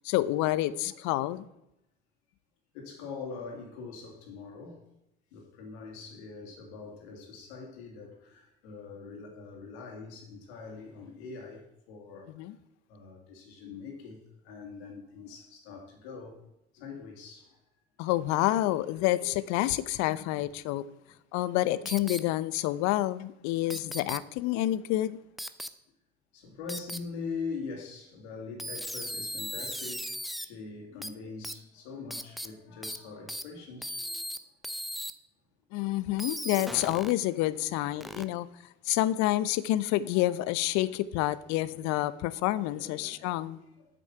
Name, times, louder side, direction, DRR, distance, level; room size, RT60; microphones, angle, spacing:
voice 1, 0.0-1.4 12.4-12.5 18.0-20.8 21.3-25.2 35.7-38.5 38.9-43.6, left 15 dB, 55° left, 0.6 m, -28 dB
voice 2, 2.7-4.8 5.3-12.3 12.9-14.2 14.4-16.5 16.7-17.5 26.3-34.1 37.7-38.3 40.1-40.2 40.8-40.9 41.2-41.6 42.6-43.9, left 4 dB, 70° left, 2.6 m, -43 dB
sound 1, 21.9-22.2 23.7-24.2 25.4-25.7 26.7-27.0 28.6-30.5 31.0-31.1 31.4-31.5 32.1-32.5 32.8-33.0 33.3-33.4 33.8-34.4 34.6-35.1 36.2-37.1 38.0-38.2, equal, ahead, 0.5 m, -37 dB
8.2 x 6.2 x 5.6 m
hypercardioid pair, 70°, 34 cm